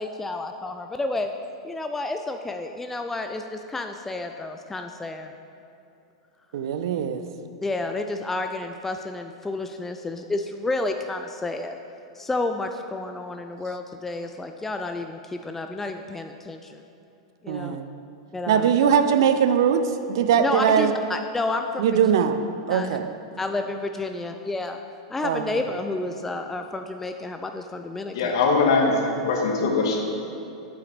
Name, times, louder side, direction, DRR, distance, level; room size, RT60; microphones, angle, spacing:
voice 1, 0.0-1.3 1.6-5.3 7.6-11.8 12.2-16.8 17.4-17.8 18.3-18.7 20.4-22.0 22.7-22.9 23.4-24.8 25.1-28.3, left 2 dB, 10° left, 6 dB, 0.4 m, -30 dB
voice 2, 6.5-7.2 17.5-17.9 18.5-20.9 21.8-22.4 22.7-23.1 25.2-25.7, right 8 dB, 65° right, 9 dB, 0.5 m, -21 dB
voice 3, 28.1-30.0, left 4 dB, 65° left, 1 dB, 1.3 m, -21 dB
8.5 x 8.5 x 3.3 m, 2.9 s
hypercardioid pair, 95°, 3 cm